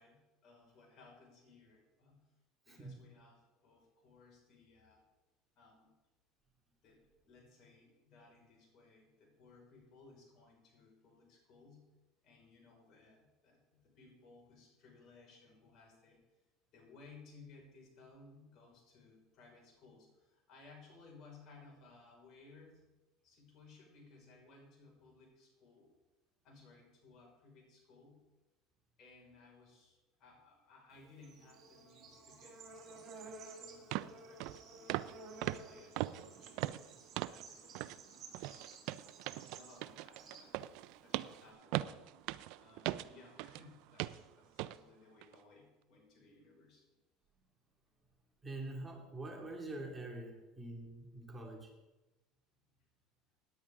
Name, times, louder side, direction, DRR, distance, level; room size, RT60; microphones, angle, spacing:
voice 1, 0.0-2.3 2.7-5.0 5.6-5.9 6.8-11.9 12.2-16.2 16.7-22.9 23.2-25.9 26.4-28.3 29.0-35.0 35.4-36.7 37.3-40.5 41.0-41.9 42.6-46.9 52.6-52.7, left 3 dB, 55° left, 0 dB, 5.2 m, -61 dB
Bird / Insect, 30.9-41.5, right 3 dB, 45° right, 4.3 m, -54 dB
sound 1, 33.3-33.4 33.9-34.1 34.4-34.6 34.9-35.2 35.4-37.5 37.8-38.0 38.3-43.6 44.0-44.2 44.6-44.8 45.2-45.4, right 16 dB, 70° right, 0.4 m, -40 dB
voice 2, 48.4-51.7, right 2 dB, 15° right, 0 dB, 2.4 m, -45 dB
17.5 x 10.0 x 3.7 m, 1.1 s
supercardioid pair, 105°, 0 cm